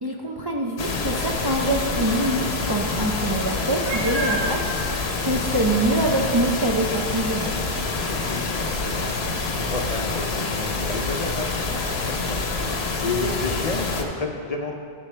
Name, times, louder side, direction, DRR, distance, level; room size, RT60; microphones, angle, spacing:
voice 1, 0.0-4.6 5.2-7.5, right 1 dB, 30° right, -1 dB, 0.5 m, -24 dB
sound 1, 0.8-14.0, left 3 dB, 90° left, 1.1 m, -27 dB
Meow, 3.8-4.5 5.3-5.4 5.9-6.0 10.0-10.1, right 2 dB, 15° right, 1.2 m, -28 dB
voice 2, 7.9-11.5 12.7-14.9, left 3 dB, 45° left, 1 dB, 0.7 m, -31 dB
13.5 x 6.2 x 3.3 m, 2.3 s
omnidirectional pair, 1.0 m